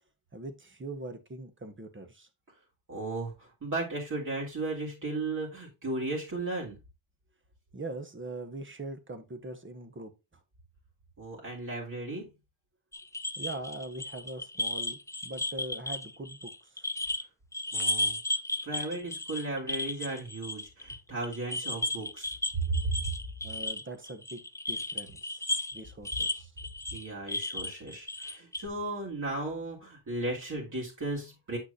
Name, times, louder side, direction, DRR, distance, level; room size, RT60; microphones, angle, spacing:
voice 1, 0.3-2.3 7.7-10.1 13.4-16.9 23.4-24.4 24.7-25.4 25.7-26.5, right 2 dB, 25° right, 1.4 m, -42 dB
voice 2, 2.9-6.8 11.2-12.3 17.7-18.2 18.6-22.3 22.7-22.9 26.9-31.6, right 2 dB, 40° right, 3.3 m, -35 dB
sound 1, 12.9-17.2 17.5-21.0 21.2-28.7, left 2 dB, 5° left, 0.4 m, -34 dB
8.3 x 6.1 x 2.8 m
cardioid pair, 75°, 47 cm